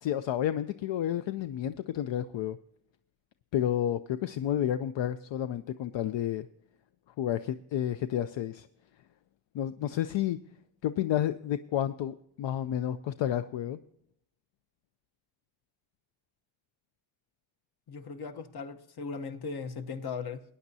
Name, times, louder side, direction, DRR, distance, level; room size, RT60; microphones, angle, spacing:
voice 1, 0.0-2.6 3.5-6.5 7.2-8.7 9.5-10.4 10.8-13.8, left 11 dB, 75° left, 0.5 m, -30 dB
voice 2, 17.9-20.4, left 5 dB, 55° left, 1.0 m, -38 dB
19.5 x 9.8 x 2.7 m
wide cardioid pair, 125°, 45 cm